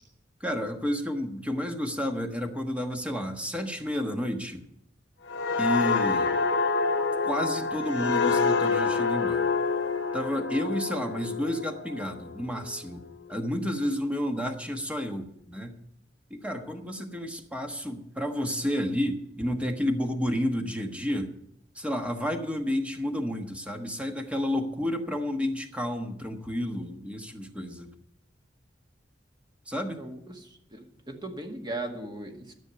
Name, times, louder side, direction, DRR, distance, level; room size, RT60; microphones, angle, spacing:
voice 1, 0.4-4.7 5.6-6.3 7.2-9.5 10.1-13.0 13.3-15.7 16.3-21.3 21.7-27.9 29.7-30.0, equal, 5° right, 4 dB, 1.3 m, -31 dB
sound 1, 5.3-12.7 13.1-13.4, left 4 dB, 65° left, 0.9 m, -27 dB
voice 2, 30.0-32.5, right 2 dB, 25° right, 3 dB, 1.9 m, -38 dB
13.5 x 6.4 x 9.5 m, 0.75 s
head